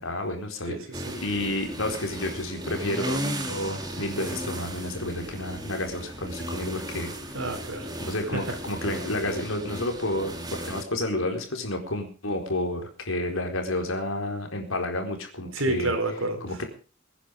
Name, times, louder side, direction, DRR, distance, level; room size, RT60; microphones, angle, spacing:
voice 1, 0.0-0.8 1.2-7.1 8.0-15.9 16.4-16.6, left 1 dB, 90° left, 4 dB, 4.4 m, -30 dB
voice 2, 0.7-1.2 7.3-7.9 8.3-8.4 15.5-16.4, right 2 dB, 80° right, 6 dB, 4.7 m, -29 dB
sound 1, 0.9-10.8, equal, 20° right, 3.0 m, -35 dB
23.0 x 10.5 x 5.2 m, 0.38 s
head